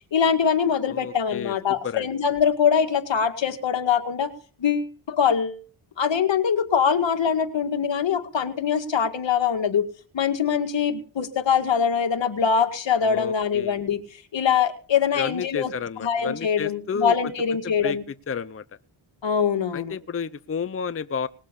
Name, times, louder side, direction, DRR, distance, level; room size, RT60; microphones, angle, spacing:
voice 1, 0.1-4.3 4.6-5.6 6.0-9.9 10.1-15.7 16.0-18.0 19.2-20.0, left 7 dB, 65° left, 7 dB, 2.2 m, -23 dB
voice 2, 0.9-1.5 1.8-2.1 13.0-13.8 15.2-17.3 17.6-18.0 18.3-18.6 19.7-21.3, left 6 dB, 30° left, 15 dB, 0.7 m, -31 dB
20.0 x 7.4 x 7.0 m, 0.42 s
cardioid pair, 60°, 47 cm